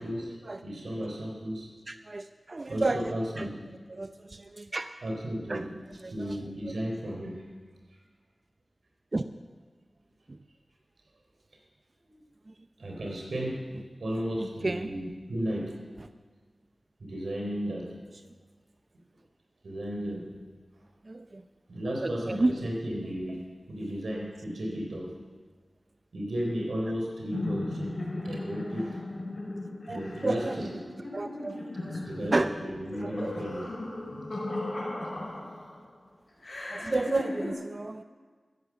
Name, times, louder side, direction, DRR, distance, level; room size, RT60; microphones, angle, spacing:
voice 1, 0.0-1.7 2.7-3.6 5.0-5.8 6.1-7.5 12.0-12.1 12.8-15.9 17.0-18.0 19.6-20.4 21.7-23.4 23.7-25.2 26.1-28.0 28.2-29.0 29.9-30.7 32.0-33.7 34.3-34.4 35.3-35.5, equal, 85° right, 0 dB, 3.6 m, -34 dB
voice 2, 1.9-3.0 3.4-3.5 3.9-4.9 5.5-5.6 6.0-6.1 9.1-9.2 10.3-10.4 14.4-14.9 21.1-21.4 22.0-22.5 29.9-30.6 31.1-32.5 33.0-33.3 36.7-38.0, right 2 dB, 50° right, 9 dB, 0.6 m, -31 dB
sound 1, 27.3-35.8 36.4-37.5, left 2 dB, 60° left, 5.7 m, -36 dB
14.0 x 11.0 x 7.3 m, 1.5 s
cardioid pair, 40°, 0 cm